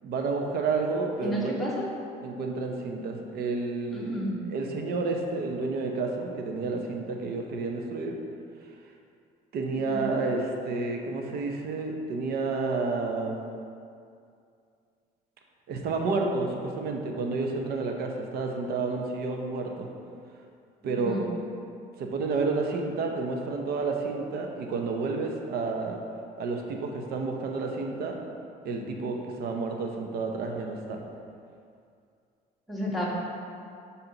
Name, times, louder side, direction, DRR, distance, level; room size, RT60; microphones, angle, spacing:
voice 1, 0.0-1.6 2.2-4.2 4.5-8.2 9.5-13.4 15.7-19.9 20.8-21.3 22.0-26.0 26.4-28.2 28.6-31.0, right 3 dB, 70° right, 2 dB, 0.8 m, -30 dB
voice 2, 1.2-1.8 3.9-4.3 9.7-10.1 20.8-21.2 32.7-33.0, equal, ahead, -7 dB, 1.6 m, -31 dB
7.2 x 4.2 x 4.0 m, 2.4 s
cardioid pair, 110°, 17 cm